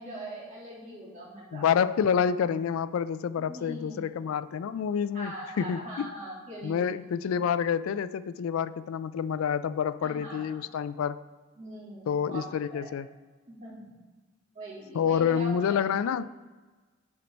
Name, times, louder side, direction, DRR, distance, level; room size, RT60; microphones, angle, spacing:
voice 1, 0.0-1.6 3.4-4.0 5.1-7.0 10.0-10.6 11.6-12.9 13.5-13.9 14.5-15.8, right 1 dB, 35° right, -7 dB, 2.7 m, -41 dB
voice 2, 1.5-6.1 6.6-11.2 12.1-13.1 14.9-16.3, left 7 dB, 75° left, 14 dB, 0.3 m, -28 dB
9.6 x 4.5 x 5.2 m, 1.3 s
head